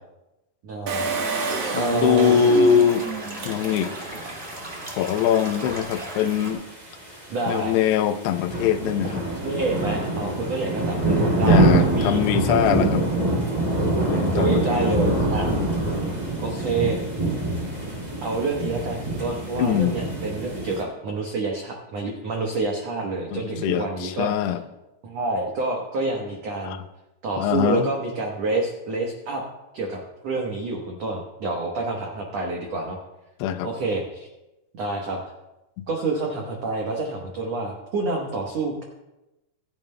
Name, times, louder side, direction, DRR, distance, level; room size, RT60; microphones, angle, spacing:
voice 1, 0.6-1.1 1.7-2.6 7.3-7.8 9.0-9.1 9.4-12.7 14.3-15.5 16.4-17.0 18.2-24.3 25.0-26.8 27.2-29.4 29.7-33.0 33.6-34.3 34.8-35.2 35.9-38.8, right 3 dB, 80° right, 0 dB, 1.5 m, -28 dB
Engine, 0.9-4.3 4.8-4.9 5.1-5.2, right 4 dB, 60° right, 1.7 m, -30 dB
sound 1, 1.2-6.5, right 1 dB, 30° right, 1.2 m, -36 dB
voice 2, 1.7-3.1 3.5-3.9 5.0-6.7 7.5-9.2 11.4-13.0 14.1-14.9 19.6-20.0 23.3-24.6 26.6-26.8 27.4-27.9 33.4-33.7 35.8-35.9, left 8 dB, 90° left, 10 dB, 2.8 m, -22 dB
sound 2, 3.6-20.8, right 2 dB, 15° right, 2.1 m, -25 dB
25.5 x 9.0 x 2.2 m, 0.99 s
omnidirectional pair, 4.7 m